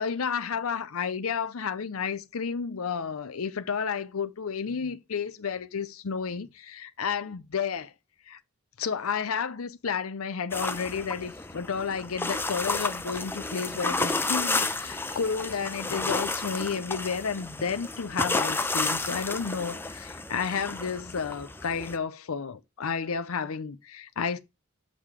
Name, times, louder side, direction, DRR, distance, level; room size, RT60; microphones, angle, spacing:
voice 1, 0.0-7.9 8.3-8.4 8.8-24.4, left 6 dB, 90° left, 0.6 m, -31 dB
sound 1, 10.5-22.0, left 3 dB, 10° left, 0.6 m, -31 dB
6.4 x 5.7 x 4.9 m
head